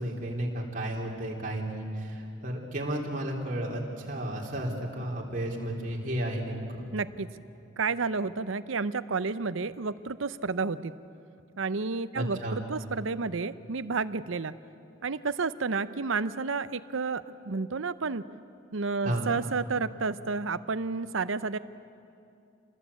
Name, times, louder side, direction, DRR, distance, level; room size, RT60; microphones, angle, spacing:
voice 1, 0.0-6.7 12.2-12.6 19.1-19.3, right 1 dB, 40° right, -2 dB, 3.5 m, -33 dB
voice 2, 6.9-7.3 7.8-10.9 11.6-14.5 15.0-18.3 18.7-21.6, right 4 dB, 80° right, 14 dB, 0.7 m, -31 dB
27.5 x 20.0 x 8.4 m, 2.6 s
head